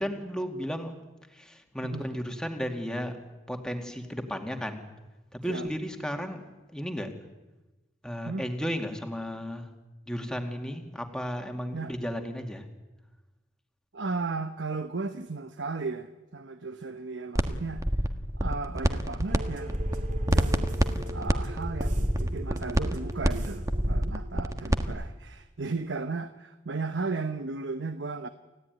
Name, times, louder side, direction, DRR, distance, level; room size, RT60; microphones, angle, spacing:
voice 1, 0.0-3.2 3.5-4.8 5.3-6.4 6.7-7.1 8.0-9.7 10.1-12.6, equal, 5° left, 4 dB, 2.4 m, -34 dB
voice 2, 13.9-17.8 18.4-20.7 21.1-28.3, right 3 dB, 85° right, 10 dB, 1.0 m, -35 dB
sound 1, 17.4-17.5 17.8-19.4 19.7-24.9, equal, 20° right, 1.5 m, -26 dB
sound 2, 19.3-24.9, right 1 dB, 45° right, 3.0 m, -39 dB
29.0 x 15.5 x 9.5 m, 1.1 s
head